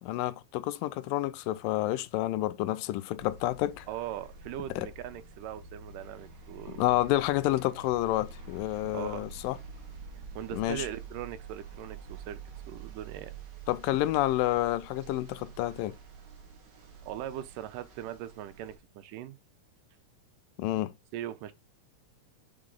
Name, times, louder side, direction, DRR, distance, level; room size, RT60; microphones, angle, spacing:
voice 1, 0.0-3.9 4.8-4.9 6.7-9.6 10.6-10.9 13.7-16.0 20.6-20.9, left 15 dB, 85° left, 2.2 m, -29 dB
sound 1, 3.2-18.8, right 4 dB, 65° right, 1.0 m, -47 dB
voice 2, 3.9-7.0 8.9-9.3 10.4-12.4 12.7-13.4 17.0-19.4 21.1-21.5, right 11 dB, 85° right, 2.2 m, -40 dB
5.8 x 4.9 x 3.7 m
omnidirectional pair, 3.9 m